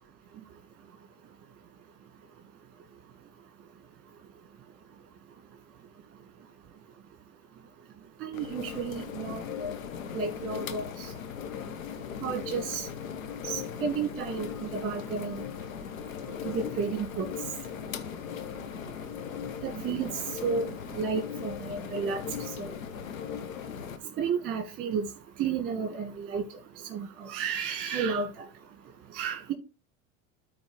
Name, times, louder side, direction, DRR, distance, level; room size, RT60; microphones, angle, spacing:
voice 1, 8.2-9.7 10.1-11.1 12.2-12.9 13.4-15.4 16.4-17.3 19.6-20.1 20.4-22.2 22.6-22.7 24.2-25.1 25.4-26.4 26.9-28.4 29.1-29.5, right 5 dB, 35° right, 1.7 m, -32 dB
sound 1, 8.3-24.0, left 8 dB, 85° left, 1.1 m, -38 dB
13.0 x 4.6 x 3.1 m
hypercardioid pair, 90°, 40 cm